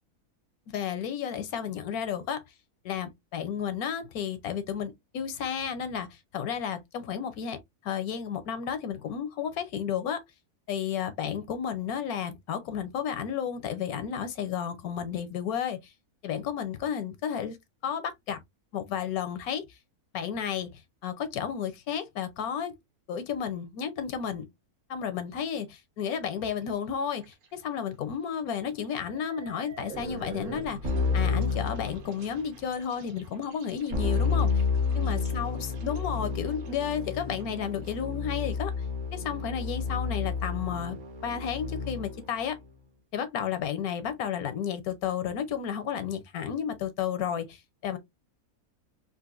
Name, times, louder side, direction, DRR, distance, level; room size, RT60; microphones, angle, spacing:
voice 1, 0.7-2.4 2.8-7.6 7.8-10.2 10.7-15.9 16.2-17.6 17.8-18.4 18.7-19.6 20.1-22.7 23.1-24.5 24.9-30.8 31.1-34.6 34.9-38.7 39.1-42.6 43.1-48.0, left 8 dB, 75° left, 1.1 m, -32 dB
sound 1, 26.4-26.8 27.1-27.5 27.9-28.0 28.8-37.9, right 4 dB, 75° right, 1.4 m, -46 dB
Keyboard (musical), 30.8-32.5 33.9-42.3, left 5 dB, 55° right, 1.4 m, -30 dB
4.0 x 2.4 x 2.4 m
omnidirectional pair, 1.6 m